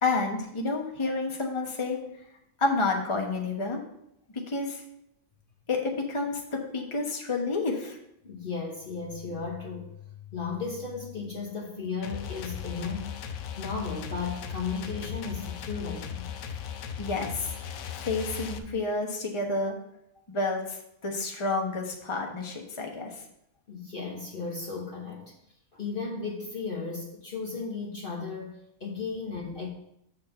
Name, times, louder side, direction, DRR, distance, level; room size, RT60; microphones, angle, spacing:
voice 1, 0.0-2.0 2.6-3.8 4.5-4.8 5.7-8.0 17.0-17.6 17.9-19.8 20.3-23.1, left 3 dB, 25° left, 1 dB, 1.1 m, -29 dB
voice 2, 8.2-13.2 13.6-16.3 23.7-25.3 25.7-29.7, left 4 dB, 45° left, -1 dB, 1.2 m, -35 dB
sound 1, 12.0-18.6, left 8 dB, 85° left, 1.1 m, -37 dB
7.3 x 4.3 x 6.5 m, 0.77 s
omnidirectional pair, 1.4 m